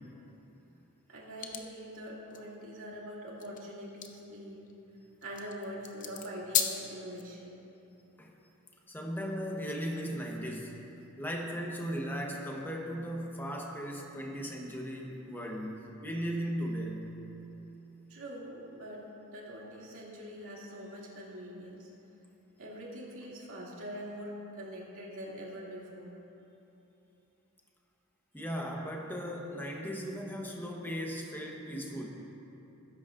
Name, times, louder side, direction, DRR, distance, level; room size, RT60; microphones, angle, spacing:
voice 1, 1.1-4.7 5.2-7.6 18.1-19.0 19.3-21.9 22.6-26.2, equal, 65° right, -5 dB, 2.4 m, -43 dB
sound 1, 1.4-1.6 2.3-2.4 3.4-7.2, left 8 dB, 35° left, 0.7 m, -35 dB
voice 2, 8.9-10.8 11.2-17.0 28.3-32.1, equal, 10° left, 0 dB, 1.0 m, -37 dB
19.5 x 10.5 x 2.5 m, 2.9 s
head